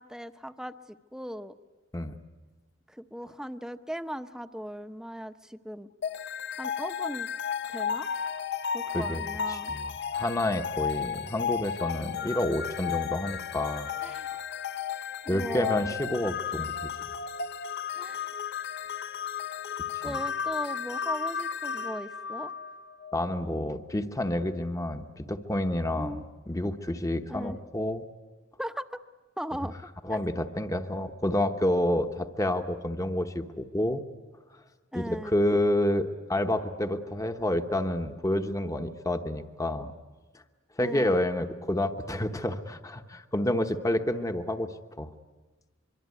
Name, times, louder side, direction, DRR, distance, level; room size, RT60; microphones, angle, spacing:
voice 1, 0.0-1.5 2.9-5.9 6.6-7.3 7.7-8.1 8.7-9.7 14.0-14.3 15.2-15.9 17.9-18.3 20.0-22.5 26.0-26.2 27.3-27.6 28.6-29.0 29.4-30.2 34.9-35.4 40.8-41.2, equal, 5° right, 10 dB, 0.8 m, -38 dB
sound 1, 6.0-23.2, left 7 dB, 55° left, 0.9 m, -34 dB
voice 2, 9.5-13.9 15.3-16.9 19.9-20.2 23.1-28.0 30.0-34.0 34.9-39.9 40.8-45.1, left 1 dB, 15° left, 7 dB, 1.0 m, -29 dB
25.0 x 24.0 x 9.5 m, 1.2 s
head